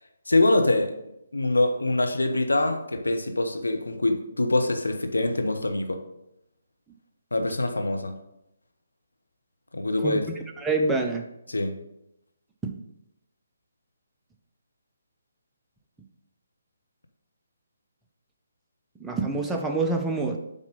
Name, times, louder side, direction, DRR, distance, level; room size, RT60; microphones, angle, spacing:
voice 1, 0.3-1.0 1.3-6.0 7.3-8.2 9.7-10.2 11.5-11.8, left 2 dB, 75° left, 5 dB, 0.9 m, -24 dB
voice 2, 10.0-11.2 12.6-12.7 19.0-20.4, right 3 dB, 5° right, 2 dB, 0.6 m, -27 dB
7.3 x 3.9 x 5.4 m, 0.85 s
figure-of-eight pair, 140°, 0 cm